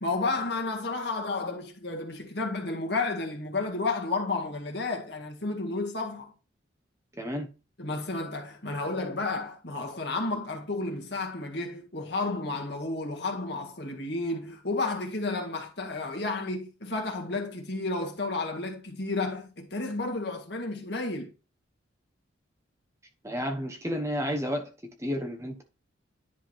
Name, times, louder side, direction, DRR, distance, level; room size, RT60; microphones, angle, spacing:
voice 1, 0.0-6.3 7.8-21.3, left 3 dB, 55° left, 1.8 m, -32 dB
voice 2, 7.2-7.5 23.2-24.7 25.0-25.6, equal, 15° right, 1.0 m, -31 dB
10.5 x 3.6 x 4.5 m
head